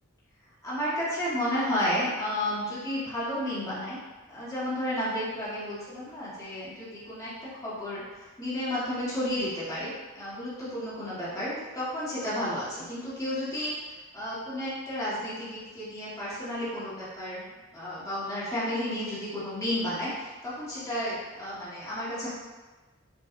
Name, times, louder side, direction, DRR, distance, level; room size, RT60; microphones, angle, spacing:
voice 1, 0.6-4.0 4.3-13.7 14.1-22.3, left 1 dB, 15° left, -10 dB, 1.3 m, -32 dB
5.4 x 2.5 x 2.5 m, 1.3 s
head